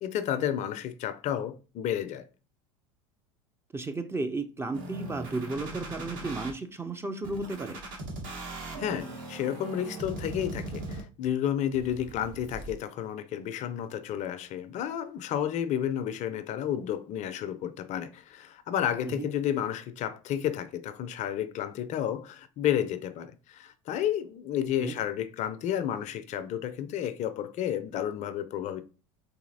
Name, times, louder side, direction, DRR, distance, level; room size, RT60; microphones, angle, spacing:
voice 1, 0.0-2.3 8.8-28.8, left 10 dB, 45° left, 0.4 m, -31 dB
voice 2, 3.7-7.8 19.0-19.3 24.8-24.9, right 3 dB, 15° right, 0.4 m, -34 dB
sound 1, 4.7-6.5 7.2-11.3 11.7-12.7, right 2 dB, 55° right, 1.3 m, -39 dB
4.0 x 2.8 x 2.6 m
hypercardioid pair, 90°, 17 cm